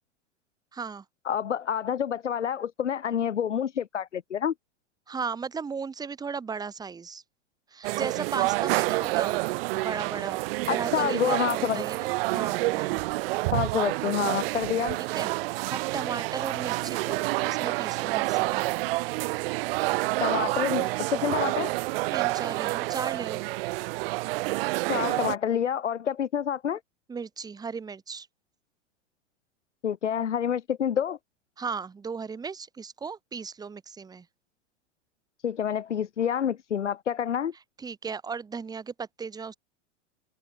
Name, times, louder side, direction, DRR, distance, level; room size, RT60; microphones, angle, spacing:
voice 1, 0.7-1.0 5.1-7.2 7.7-9.4 9.7-10.4 10.7-13.0 15.0-18.6 22.1-23.4 27.1-28.3 31.6-34.3 37.8-39.6, right 5 dB, 10° right, 0.8 m, -36 dB
voice 2, 1.2-4.5 10.7-11.8 13.5-15.0 20.2-21.7 24.8-26.8 29.8-31.2 35.4-37.5, left 8 dB, 85° left, 1.4 m, -28 dB
sound 1, 7.8-25.4, right 22 dB, 55° right, 0.7 m, -28 dB
hypercardioid pair, 95°, 35 cm